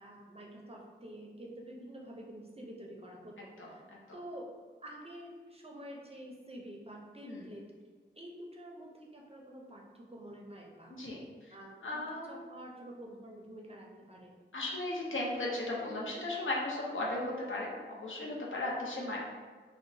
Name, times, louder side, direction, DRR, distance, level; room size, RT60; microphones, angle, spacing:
voice 1, 0.0-3.8 4.1-4.5 4.8-7.6 8.2-11.0 11.5-14.3, right 1 dB, 30° right, -1 dB, 0.5 m, -48 dB
voice 2, 3.6-4.0 7.2-7.5 10.9-11.5 11.8-12.5 14.5-19.2, left 2 dB, 85° left, -4 dB, 0.6 m, -36 dB
2.8 x 2.1 x 2.6 m, 1.5 s
wide cardioid pair, 40°, 20 cm